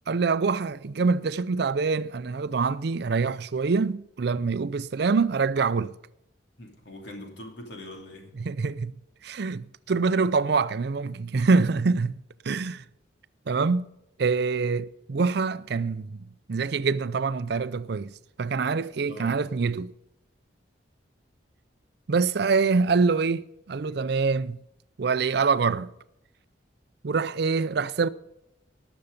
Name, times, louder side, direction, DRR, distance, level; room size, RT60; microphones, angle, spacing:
voice 1, 0.1-5.9 8.4-8.9 9.2-12.1 12.4-12.8 13.5-13.9 14.2-16.2 16.5-18.1 18.4-19.9 22.1-24.6 25.0-25.9 27.0-28.1, right 4 dB, 60° right, 0.5 m, -25 dB
voice 2, 6.6-8.3 11.5-11.6 19.1-19.5, left 1 dB, 65° left, 2.9 m, -42 dB
19.0 x 6.9 x 5.2 m
head